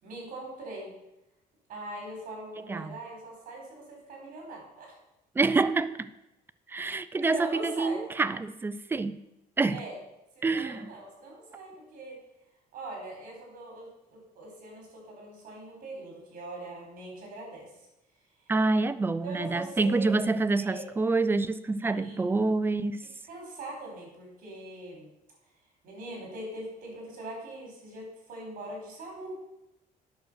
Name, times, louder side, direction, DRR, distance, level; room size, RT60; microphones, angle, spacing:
voice 1, 0.0-0.9 1.7-4.9 7.2-8.1 9.7-10.0 10.4-12.2 12.7-17.7 19.2-20.1 20.5-20.8 21.8-22.2 23.2-25.1 25.8-29.4, right 1 dB, 60° right, 0 dB, 4.6 m, -41 dB
voice 2, 5.4-6.1 6.7-9.2 9.6-9.8 10.4-10.9 18.5-23.1, right 3 dB, 15° right, 13 dB, 0.4 m, -27 dB
9.3 x 6.4 x 6.4 m, 0.92 s
cardioid pair, 155°, 16 cm